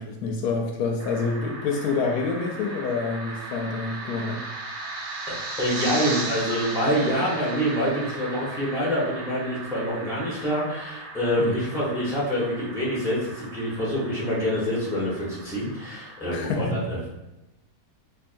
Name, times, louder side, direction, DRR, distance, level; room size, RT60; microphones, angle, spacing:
voice 1, 0.0-4.5 11.4-11.5 16.3-16.8, left 4 dB, 75° left, 2 dB, 1.0 m, -27 dB
sound 1, 1.0-16.3, right 2 dB, 85° right, 1.4 m, -37 dB
voice 2, 5.3-17.1, equal, ahead, -6 dB, 0.8 m, -26 dB
4.6 x 2.8 x 2.5 m, 0.97 s
omnidirectional pair, 1.7 m